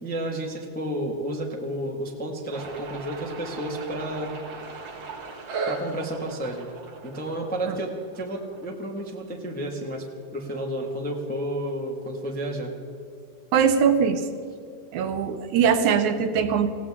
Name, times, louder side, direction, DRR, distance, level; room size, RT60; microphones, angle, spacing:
voice 1, 0.0-4.3 5.7-6.7 7.0-10.0 10.3-12.7, right 1 dB, 5° left, 0 dB, 0.9 m, -31 dB
sound 1, 2.5-9.0, right 4 dB, 55° right, 2.9 m, -37 dB
voice 2, 13.5-14.2 14.9-16.7, right 7 dB, 75° right, 9 dB, 2.1 m, -21 dB
20.0 x 16.5 x 3.7 m, 2.6 s
omnidirectional pair, 3.6 m